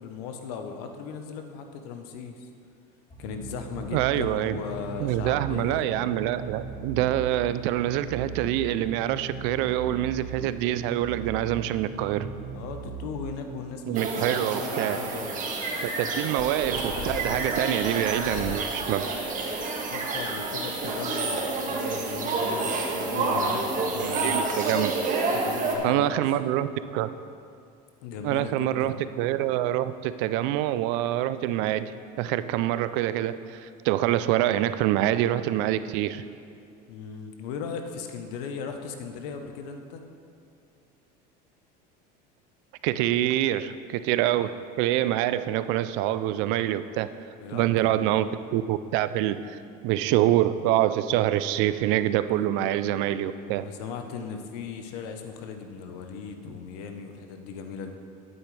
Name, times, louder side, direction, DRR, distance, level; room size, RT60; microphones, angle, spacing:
voice 1, 0.0-2.5 3.2-5.9 12.5-15.4 16.1-16.3 18.2-18.5 19.9-24.4 25.3-26.2 28.0-29.0 36.9-40.0 47.4-48.1 53.6-57.9, left 6 dB, 85° left, 6 dB, 1.0 m, -37 dB
sound 1, 3.1-13.8, right 4 dB, 30° left, 2.7 m, -39 dB
voice 2, 3.9-4.5 5.0-12.3 13.9-15.0 16.0-19.0 24.0-24.9 25.8-27.1 28.2-31.9 32.2-36.2 42.8-47.1 47.5-53.7, right 13 dB, 70° right, 14 dB, 0.5 m, -26 dB
sound 2, 13.9-25.7, right 3 dB, 40° right, 1.6 m, -29 dB
sound 3, 16.4-19.7 19.9-20.5 20.8-20.9 21.1-21.2, left 5 dB, 45° left, 0.7 m, -41 dB
11.5 x 9.2 x 3.3 m, 2.4 s
supercardioid pair, 115°, 20 cm